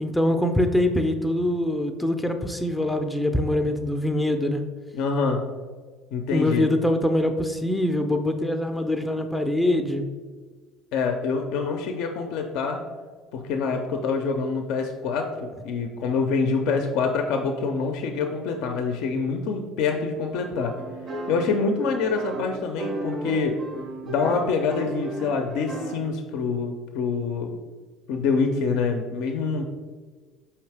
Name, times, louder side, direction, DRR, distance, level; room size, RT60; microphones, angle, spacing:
voice 1, 0.0-4.7 6.3-10.0, left 1 dB, 5° left, 5 dB, 0.4 m, -24 dB
voice 2, 4.9-5.4 6.1-6.7 10.9-12.8 13.3-20.8 21.3-23.6 24.0-27.6 28.1-29.7, left 4 dB, 70° left, 4 dB, 0.4 m, -26 dB
sound 1, 20.3-26.0, right 2 dB, 45° right, 0.5 m, -35 dB
4.7 x 2.8 x 3.3 m, 1.4 s
supercardioid pair, 80°, 0 cm